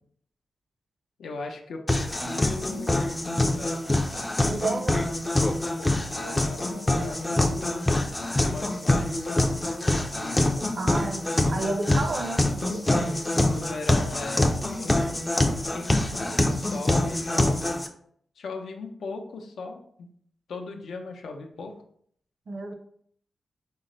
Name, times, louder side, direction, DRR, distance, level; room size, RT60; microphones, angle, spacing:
voice 1, 1.2-3.9 4.4-4.6 5.3-8.0 8.4-10.8 12.9-13.2 13.5-14.4 14.7-15.1 15.7-17.8 18.4-20.1 20.5-21.7, left 3 dB, 85° left, 3 dB, 0.6 m, -39 dB
sound 1, 1.9-17.9, left 1 dB, 15° left, 0.4 m, -25 dB
voice 2, 4.5-5.0 10.8-13.2 22.5-22.7, right 3 dB, 45° right, 5 dB, 0.6 m, -31 dB
5.5 x 2.1 x 3.8 m, 0.64 s
wide cardioid pair, 150°, 0 cm